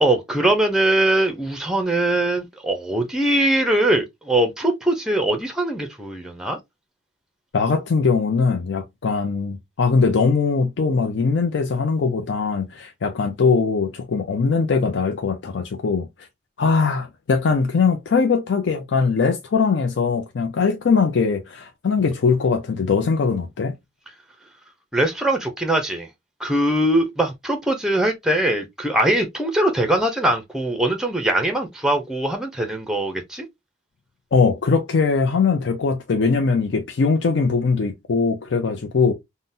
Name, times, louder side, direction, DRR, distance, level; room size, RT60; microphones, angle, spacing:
voice 1, 0.0-6.6 24.9-26.1 26.4-33.5, right 1 dB, 5° right, 0.5 m, -21 dB
voice 2, 7.5-16.1 16.6-23.7 34.3-39.1, left 4 dB, 70° left, 0.5 m, -21 dB
3.7 x 2.1 x 2.5 m
head